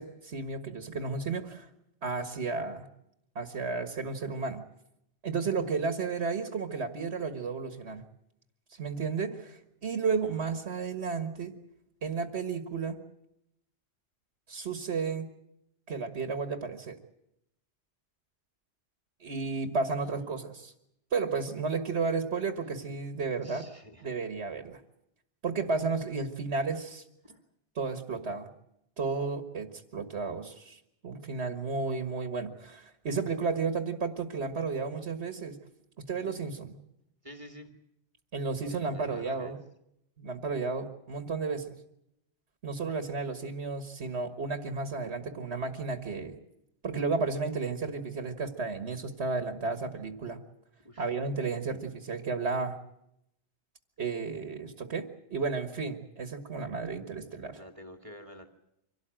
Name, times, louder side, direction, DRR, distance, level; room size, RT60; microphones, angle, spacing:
voice 1, 0.0-1.7 2.0-2.9 3.4-4.6 5.2-8.0 8.7-11.6 12.0-13.0 14.5-15.3 15.9-17.0 19.2-20.7 21.1-23.7 24.0-24.8 25.4-27.0 27.8-28.5 29.0-35.6 36.1-36.8 38.3-39.6 40.2-41.7 42.6-46.4 46.8-50.4 51.0-52.8 54.0-57.6, right 4 dB, 70° right, 8 dB, 1.8 m, -33 dB
voice 2, 20.0-20.4 23.4-24.1 27.2-27.4 37.2-37.8 38.7-39.6 50.8-51.1 57.5-58.5, equal, 30° right, 5 dB, 1.9 m, -49 dB
25.5 x 17.5 x 9.0 m, 0.82 s
omnidirectional pair, 1.2 m